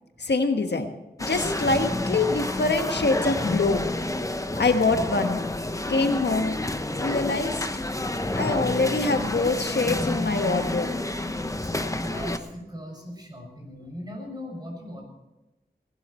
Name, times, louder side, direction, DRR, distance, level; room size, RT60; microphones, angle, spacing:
voice 1, 0.2-0.9 1.3-3.8 4.6-5.5 5.9-6.5 7.0-7.5 8.3-10.9, left 3 dB, 80° left, 6 dB, 1.4 m, -24 dB
sound 1, 1.2-12.4, left 1 dB, 20° left, 1.0 m, -29 dB
voice 2, 11.6-15.0, equal, 25° right, 0 dB, 6.5 m, -38 dB
19.0 x 12.5 x 4.4 m, 0.97 s
wide cardioid pair, 75°, 18 cm